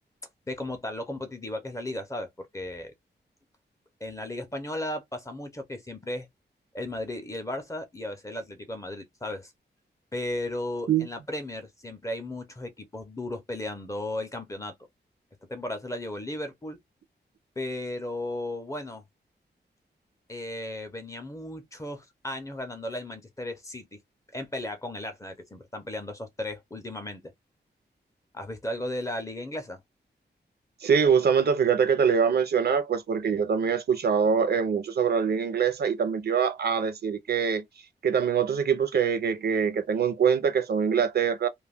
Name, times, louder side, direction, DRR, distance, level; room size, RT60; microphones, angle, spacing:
voice 1, 0.5-2.9 4.0-6.3 6.7-9.5 10.1-14.7 15.5-16.8 17.6-19.0 20.3-24.0 24.3-27.3 28.3-29.8, left 1 dB, 15° left, 0.6 m, -35 dB
voice 2, 30.8-37.6 38.0-41.5, right 6 dB, 60° right, 0.5 m, -24 dB
2.3 x 2.1 x 3.3 m
wide cardioid pair, 150°, 18 cm